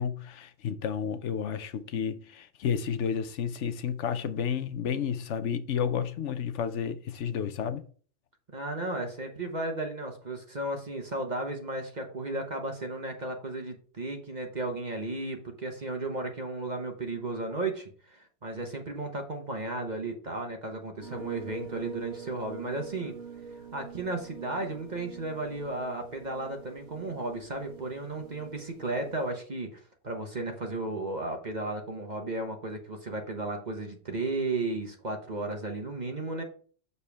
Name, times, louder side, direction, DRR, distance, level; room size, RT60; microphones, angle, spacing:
voice 1, 0.0-7.8, left 7 dB, 75° left, 1.0 m, -31 dB
voice 2, 8.5-23.1 23.7-29.8 30.0-36.4, right 2 dB, 40° right, 1.2 m, -34 dB
sound 1, 21.0-29.3, right 6 dB, 70° right, 1.4 m, -45 dB
7.0 x 6.8 x 3.5 m
omnidirectional pair, 1.2 m